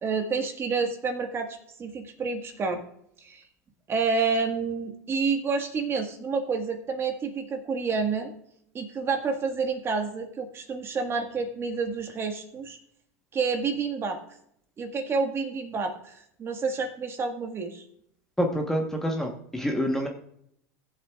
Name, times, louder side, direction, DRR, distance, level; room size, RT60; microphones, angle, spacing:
voice 1, 0.0-2.8 3.2-3.4 3.9-8.3 8.7-12.8 13.3-14.2 14.8-17.8, right 4 dB, 30° right, 4 dB, 1.6 m, -29 dB
voice 2, 18.4-20.1, equal, 5° left, 2 dB, 1.2 m, -27 dB
19.0 x 7.5 x 2.4 m, 0.72 s
supercardioid pair, 115°, 9 cm